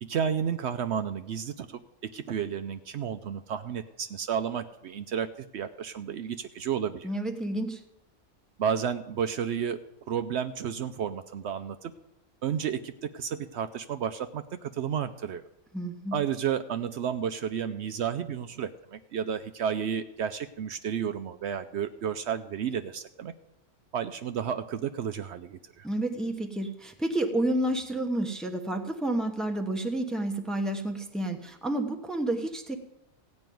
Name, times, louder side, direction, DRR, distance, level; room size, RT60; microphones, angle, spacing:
voice 1, 0.0-7.1 8.6-11.9 12.4-15.4 16.1-23.3 23.9-25.9, right 8 dB, 65° right, 10 dB, 0.8 m, -32 dB
voice 2, 7.0-7.8 15.7-16.2 25.8-32.8, right 1 dB, ahead, 4 dB, 0.9 m, -30 dB
15.5 x 5.3 x 9.3 m, 0.90 s
omnidirectional pair, 1.3 m